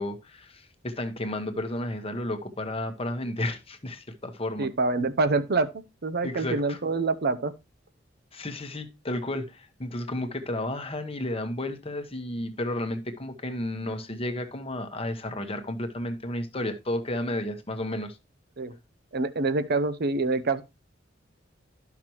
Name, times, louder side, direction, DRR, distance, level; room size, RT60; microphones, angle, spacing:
voice 1, 0.0-4.7 6.2-6.8 8.3-18.2, left 1 dB, 30° left, 1.1 m, -32 dB
voice 2, 4.6-7.5 18.6-18.7 19.1-20.6, right 3 dB, 55° right, 0.7 m, -26 dB
12.0 x 5.9 x 3.0 m
head